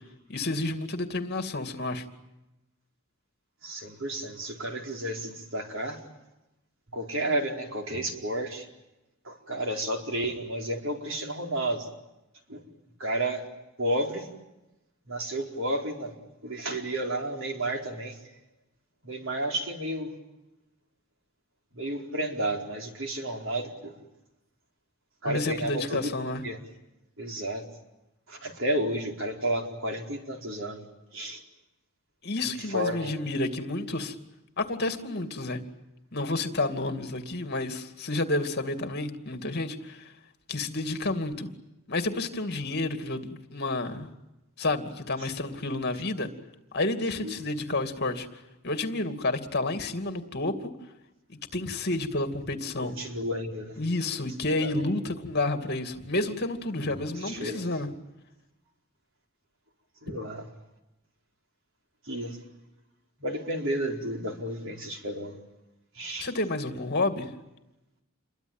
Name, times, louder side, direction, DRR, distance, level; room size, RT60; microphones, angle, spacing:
voice 1, 0.3-2.1 25.2-26.4 32.2-34.2 34.6-35.6 36.1-40.1 40.5-41.5 41.9-44.1 44.6-46.3 46.7-48.3 48.6-50.7 51.3-52.9 53.8-57.9 60.1-60.2 66.2-67.3, left 2 dB, 50° left, 7 dB, 2.5 m, -30 dB
voice 2, 3.6-6.0 6.9-8.7 9.2-11.9 12.5-12.7 13.0-13.5 13.8-14.3 15.1-16.1 16.4-18.2 19.0-20.1 21.7-23.9 25.2-26.1 26.4-26.6 27.2-27.6 28.3-30.9 31.1-31.4 32.6-33.2 47.2-47.3 52.8-53.8 54.6-54.8 56.8-57.7 60.0-60.5 62.1-62.4 63.2-65.3 65.9-66.3, right 1 dB, 60° right, 3 dB, 4.6 m, -32 dB
28.5 x 23.0 x 9.0 m, 0.96 s
head